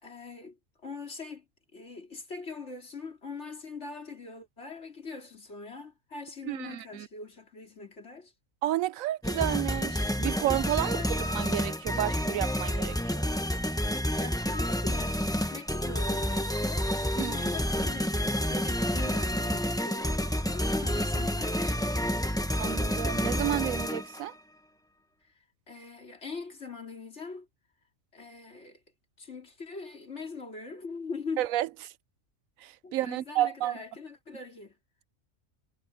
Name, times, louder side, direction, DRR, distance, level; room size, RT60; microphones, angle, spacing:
voice 1, 0.0-0.6 0.8-1.4 1.7-8.3 10.8-11.1 14.1-15.2 15.5-22.0 25.7-27.5 28.1-28.8 29.2-31.4 32.8-34.7, left 4 dB, 55° left, 3.5 m, -42 dB
voice 2, 6.4-7.1 8.6-13.2 17.2-17.3 22.6-24.3 31.4-31.7 32.6-33.8, right 14 dB, 85° right, 1.0 m, -31 dB
sound 1, 9.2-24.3, equal, 5° left, 0.9 m, -29 dB
sound 2, 11.2-11.6 14.5-14.9, equal, 70° right, 7.6 m, -41 dB
omnidirectional pair, 1.4 m